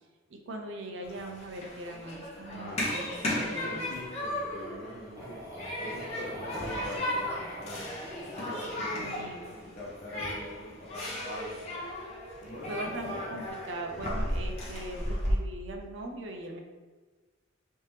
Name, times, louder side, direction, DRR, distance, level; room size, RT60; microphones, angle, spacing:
voice 1, 0.3-3.9 8.9-9.5 12.7-16.6, right 1 dB, 70° right, 3 dB, 0.5 m, -40 dB
Human group actions, 1.0-15.3, left 1 dB, 35° left, 0.8 m, -35 dB
voice 2, 2.5-5.4 5.8-11.8 12.4-13.0, left 1 dB, 55° left, -5 dB, 1.1 m, -43 dB
sound 1, 5.1-9.3 12.3-13.5, equal, 15° right, 0.8 m, -45 dB
3.3 x 2.9 x 3.2 m, 1.3 s
head